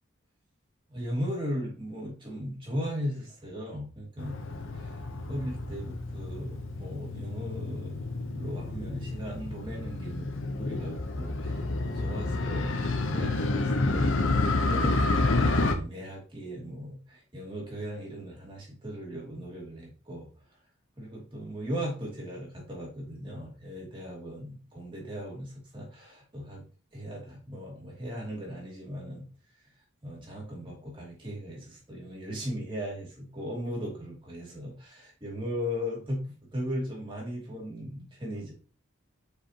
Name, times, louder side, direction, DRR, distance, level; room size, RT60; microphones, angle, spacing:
voice 1, 0.9-4.4 4.7-5.0 5.3-12.8 13.1-14.3 14.5-20.3 21.0-26.6 26.9-29.3 30.0-38.5, equal, 25° right, -3 dB, 2.6 m, -37 dB
Motorcycle, 4.2-15.7, left 2 dB, 70° left, 0.9 m, -29 dB
6.9 x 5.0 x 2.9 m, 0.37 s
head